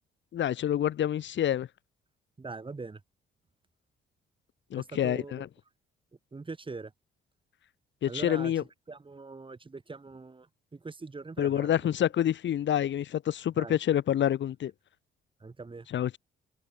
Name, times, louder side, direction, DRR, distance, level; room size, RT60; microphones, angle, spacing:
voice 1, 0.3-1.7 4.7-5.5 8.0-8.6 11.4-14.7 15.9-16.2, left 10 dB, 65° left, 3.1 m, -27 dB
voice 2, 2.4-3.0 4.7-5.5 6.3-6.9 8.0-8.5 8.9-11.9 13.5-13.8 15.4-15.9, right 3 dB, 25° right, 6.6 m, -42 dB
open air
cardioid pair, 90°, 20 cm